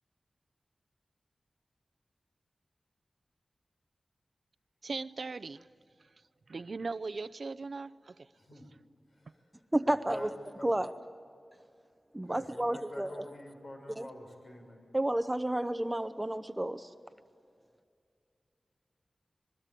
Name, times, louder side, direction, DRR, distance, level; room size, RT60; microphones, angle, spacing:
voice 1, 4.8-5.7 6.5-8.3, right 4 dB, 60° right, 0.6 m, -39 dB
voice 2, 8.3-8.7 9.1-9.4 9.9-10.7 12.3-14.9, left 1 dB, 65° left, 6.8 m, -47 dB
voice 3, 9.7-10.3 10.6-10.9 12.1-13.2 14.0-14.1 14.9-16.9, right 1 dB, 15° right, 0.8 m, -31 dB
27.0 x 22.0 x 9.2 m
wide cardioid pair, 95°, 0 cm